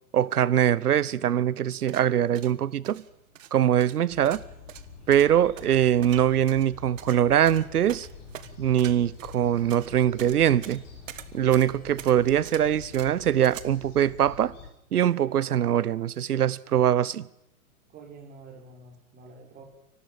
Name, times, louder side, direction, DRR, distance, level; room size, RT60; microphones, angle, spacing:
voice 1, 0.1-3.0 3.5-4.4 5.1-8.1 8.6-10.8 11.3-14.5 14.9-17.3, right 10 dB, 85° right, 1.0 m, -22 dB
sound 1, 1.7-13.6, right 11 dB, 60° right, 1.5 m, -45 dB
sound 2, 4.1-14.7, left 5 dB, 35° left, 6.4 m, -46 dB
voice 2, 17.9-19.6, right 3 dB, 20° right, 4.7 m, -47 dB
29.5 x 12.0 x 9.0 m
hypercardioid pair, 140°, 44 cm